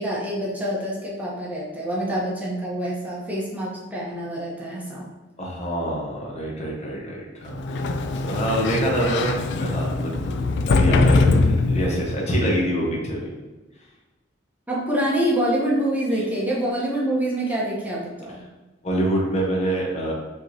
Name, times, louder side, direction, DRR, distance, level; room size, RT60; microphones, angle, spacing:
voice 1, 0.0-5.1 14.7-18.4, right 1 dB, 10° right, -5 dB, 0.9 m, -26 dB
voice 2, 5.4-8.0 8.2-10.4 10.6-13.3 18.8-20.1, right 1 dB, 35° left, -2 dB, 0.8 m, -26 dB
Sliding door, 7.5-12.2, left 3 dB, 65° left, 0.3 m, -22 dB
5.2 x 3.1 x 2.7 m, 1.2 s
head